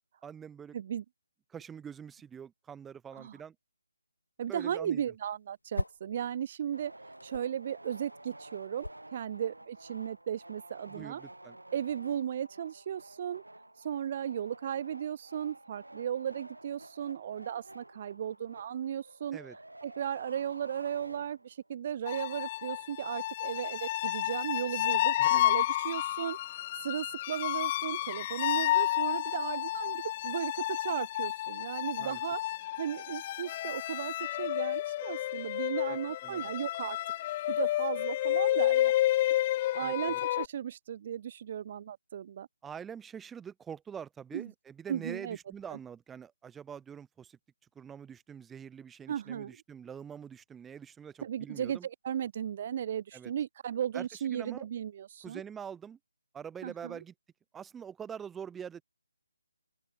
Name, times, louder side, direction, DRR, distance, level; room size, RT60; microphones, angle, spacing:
voice 1, 0.2-0.8 1.5-3.5 4.5-5.0 10.9-11.6 19.3-19.6 25.2-25.4 32.0-32.2 35.9-36.0 36.2-36.5 39.8-40.2 42.6-47.4 47.7-51.9 53.1-53.3 53.9-54.7 55.2-56.0 56.3-57.1 57.5-58.8, right 7 dB, 5° right, 3.3 m, -45 dB
voice 2, 0.7-1.0 3.1-3.4 4.4-11.2 11.7-13.4 13.7-37.0 37.5-39.0 39.4-42.5 44.3-44.5 44.9-45.4 45.7-45.8 49.1-49.6 51.2-55.4 56.6-57.0, right 9 dB, 35° right, 0.7 m, -36 dB
sound 1, 4.6-6.2 6.5-10.2, left 2 dB, 80° left, 0.8 m, -41 dB
sound 2, 6.7-21.7, right 1 dB, 80° right, 5.8 m, -51 dB
sound 3, 22.1-40.5, left 14 dB, 25° left, 0.3 m, -31 dB
open air
figure-of-eight pair, 150°, 0 cm